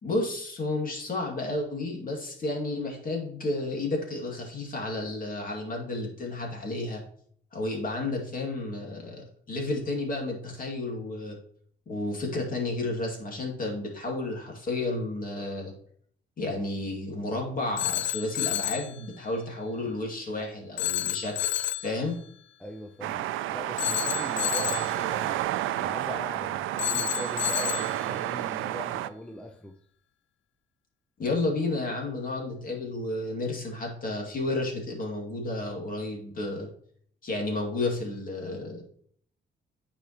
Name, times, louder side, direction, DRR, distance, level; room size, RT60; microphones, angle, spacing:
voice 1, 0.0-7.0 7.5-11.4 11.9-15.7 16.4-22.2 31.2-36.7 37.2-38.8, left 2 dB, 45° left, 2.3 m, -32 dB
Telephone, 17.8-18.9 20.8-21.9 23.8-24.9 26.8-27.9, left 13 dB, 75° left, 0.4 m, -30 dB
voice 2, 22.6-25.4 25.8-29.8, left 1 dB, 5° left, 0.6 m, -41 dB
sound 1, 23.0-29.1, right 14 dB, 85° right, 0.4 m, -30 dB
9.2 x 5.1 x 3.0 m
cardioid pair, 90°, 20 cm